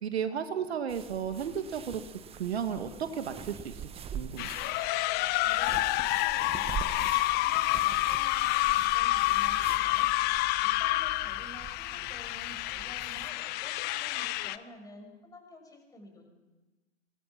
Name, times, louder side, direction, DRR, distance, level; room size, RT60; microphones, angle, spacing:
voice 1, 0.0-2.0 2.3-3.8 4.1-4.5, right 7 dB, 65° right, 9 dB, 1.9 m, -33 dB
sound 1, 0.9-13.3, right 7 dB, 15° right, 1.2 m, -44 dB
sound 2, 4.4-14.6, left 17 dB, 30° left, 0.8 m, -28 dB
voice 2, 5.4-7.0 7.3-16.3, left 1 dB, 10° left, 3 dB, 6.1 m, -51 dB
24.0 x 21.5 x 6.0 m, 1.2 s
figure-of-eight pair, 110°, 34 cm